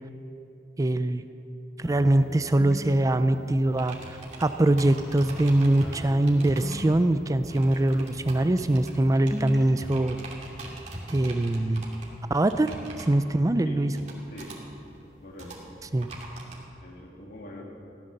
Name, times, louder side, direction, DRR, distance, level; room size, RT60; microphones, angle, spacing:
voice 1, 0.8-1.2 1.8-10.2 11.1-11.8 12.3-13.9 15.9-16.1, right 1 dB, 20° right, 11 dB, 0.4 m, -23 dB
sound 1, 1.8-5.5 5.8-8.6 8.8-9.8, equal, ahead, 1.6 m, -42 dB
sound 2, 2.5-16.6, right 1 dB, 40° right, 2.7 m, -43 dB
voice 2, 14.3-14.6 15.2-15.7 16.8-17.6, left 1 dB, 55° left, -1 dB, 2.6 m, -43 dB
15.5 x 12.0 x 6.6 m, 2.8 s
head